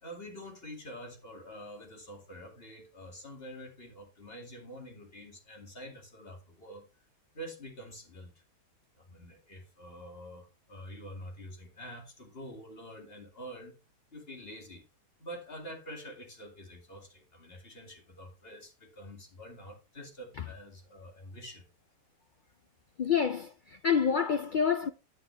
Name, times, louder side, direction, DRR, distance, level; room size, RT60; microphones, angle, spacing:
voice 1, 0.0-6.8 7.3-8.3 9.0-13.8 14.1-14.9 15.2-21.6, equal, 40° left, 2.7 m, -46 dB
voice 2, 23.0-24.9, left 7 dB, 85° left, 0.4 m, -27 dB
10.5 x 7.9 x 3.3 m
omnidirectional pair, 1.5 m